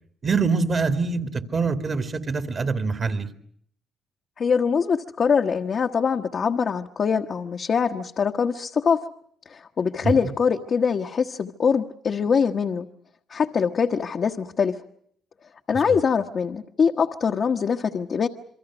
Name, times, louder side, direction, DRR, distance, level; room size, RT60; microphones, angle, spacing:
voice 1, 0.2-3.3 10.0-10.1 15.9-16.0, right 4 dB, 40° right, 9 dB, 2.3 m, -24 dB
voice 2, 4.4-9.0 9.5-12.9 13.3-14.7 15.7-18.3, left 6 dB, 50° left, 2 dB, 1.2 m, -23 dB
27.5 x 23.5 x 6.2 m, 0.64 s
cardioid pair, 90°, 0 cm